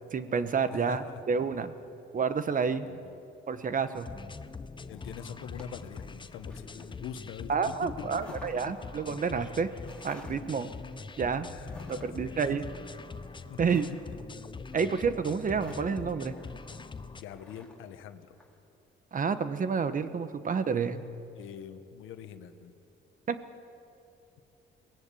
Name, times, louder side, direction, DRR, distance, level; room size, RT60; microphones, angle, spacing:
voice 1, 0.1-1.7 2.1-2.9 3.5-4.1 7.5-9.7 10.0-10.7 11.2-11.5 11.9-12.6 13.6-13.9 14.7-16.3 19.1-21.0 23.3-23.4, right 5 dB, 40° right, 12 dB, 1.2 m, -29 dB
voice 2, 0.7-1.2 2.8-3.2 4.9-8.4 11.5-12.4 13.5-13.6 17.1-18.4 21.3-22.7, left 8 dB, 85° left, 9 dB, 1.3 m, -44 dB
sound 1, 4.0-17.2, left 4 dB, 25° left, 0.7 m, -43 dB
sound 2, 5.5-18.6, left 2 dB, 5° left, 3.7 m, -54 dB
22.5 x 17.5 x 8.6 m, 2.7 s
cardioid pair, 90°, 20 cm